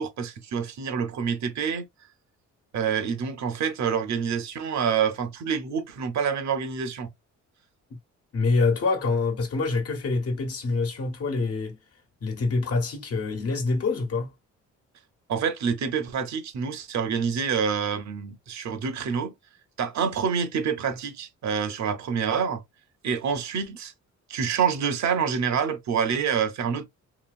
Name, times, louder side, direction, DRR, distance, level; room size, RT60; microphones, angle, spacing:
voice 1, 0.0-1.9 2.7-7.1 15.3-19.3 19.8-22.6 23.0-23.9 24.3-26.9, right 6 dB, 65° right, 0.9 m, -27 dB
voice 2, 8.3-11.8 12.2-14.3, left 3 dB, 50° left, 1.2 m, -26 dB
3.0 x 2.9 x 2.3 m
cardioid pair, 90°, 30 cm